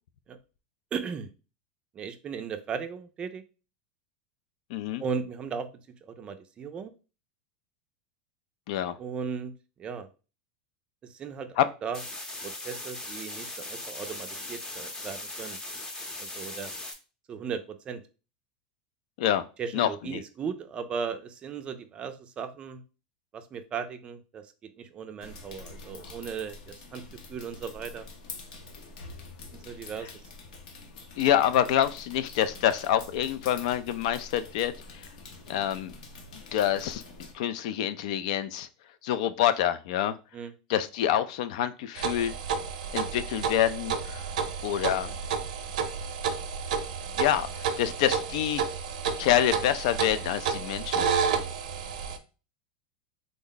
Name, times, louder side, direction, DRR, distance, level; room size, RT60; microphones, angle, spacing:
voice 1, 0.9-1.3 1.9-3.4 5.0-5.7 6.0-6.9 9.0-9.5 9.8-10.1 11.0-11.6 11.8-12.0 12.4-15.6 16.2-16.7 17.3-18.0 19.6-22.8 23.3-27.0 27.3-28.1 29.6-30.1 40.3-40.5, right 6 dB, 25° right, 8 dB, 0.4 m, -36 dB
voice 2, 4.7-5.0 8.7-9.0 11.6-11.7 19.2-19.4 19.7-20.2 31.2-35.1 35.5-35.9 36.3-37.0 37.3-38.7 39.0-40.2 40.7-42.3 42.9-44.3 44.6-45.1 47.2-48.6 49.2-51.1, left 11 dB, 65° left, 13 dB, 0.4 m, -27 dB
sound 1, 11.9-16.9, left 2 dB, 15° left, 0.7 m, -39 dB
sound 2, 25.2-37.3, left 3 dB, 80° left, 0.8 m, -46 dB
sound 3, 42.0-52.2, right 6 dB, 80° right, 0.6 m, -31 dB
3.5 x 2.1 x 3.8 m, 0.33 s
supercardioid pair, 140°, 4 cm